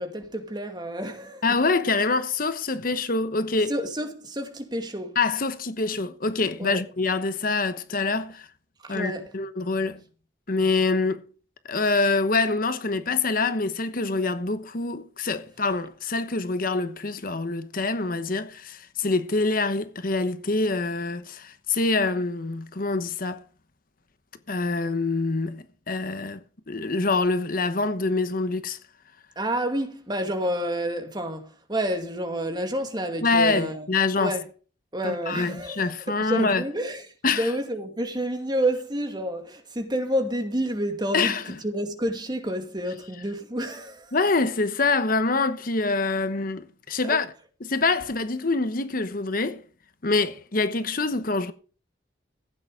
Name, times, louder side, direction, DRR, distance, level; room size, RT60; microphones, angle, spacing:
voice 1, 0.0-1.5 3.7-5.2 6.6-6.8 8.8-9.3 29.4-33.9 34.2-34.5 34.9-44.1 47.1-47.2, right 1 dB, 25° right, 2.4 m, -29 dB
voice 2, 1.4-3.7 5.1-8.5 8.9-10.0 10.5-11.2 11.7-23.4 24.5-26.4 26.7-28.8 33.2-34.3 35.0-36.6 37.2-37.5 41.1-41.4 44.1-47.3 47.6-49.6 50.0-51.5, left 3 dB, 50° left, 1.1 m, -25 dB
15.5 x 8.9 x 5.0 m
head